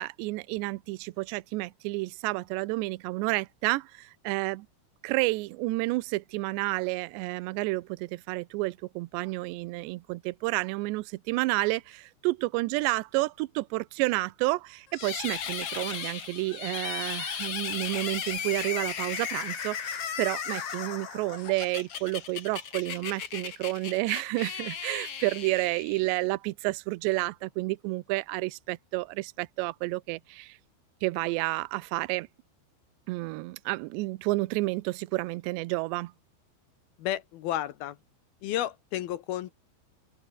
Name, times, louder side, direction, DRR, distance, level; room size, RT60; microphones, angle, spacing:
voice 1, 0.0-4.7 5.0-30.6 31.0-32.3 33.1-36.1, right 22 dB, 80° right, 2.8 m, -30 dB
sound 1, 14.9-26.3, left 7 dB, 45° left, 2.1 m, -36 dB
voice 2, 37.0-38.0 38.4-39.5, left 12 dB, 70° left, 2.4 m, -32 dB
open air
omnidirectional pair, 5.5 m